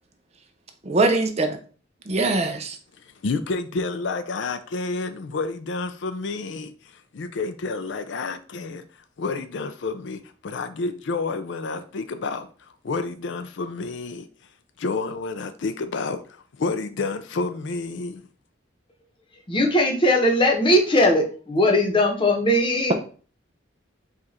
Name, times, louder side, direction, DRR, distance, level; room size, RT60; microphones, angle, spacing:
voice 1, 0.9-1.6 2.1-2.8, right 2 dB, 35° right, 0.5 m, -22 dB
voice 2, 3.0-8.8 9.2-14.3 14.8-18.2, left 3 dB, 65° left, 0.4 m, -30 dB
voice 3, 19.5-22.9, left 1 dB, 25° left, 0.9 m, -19 dB
4.9 x 2.5 x 4.2 m
head